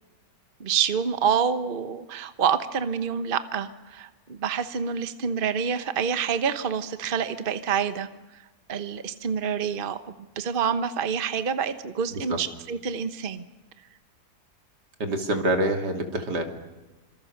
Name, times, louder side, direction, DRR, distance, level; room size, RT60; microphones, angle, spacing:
voice 1, 0.6-8.1 8.7-10.0 10.4-13.4, right 7 dB, 35° right, 11 dB, 1.1 m, -27 dB
voice 2, 15.0-16.4, right 1 dB, 85° right, 5 dB, 3.2 m, -26 dB
27.0 x 26.0 x 6.6 m, 1.1 s
omnidirectional pair, 1.7 m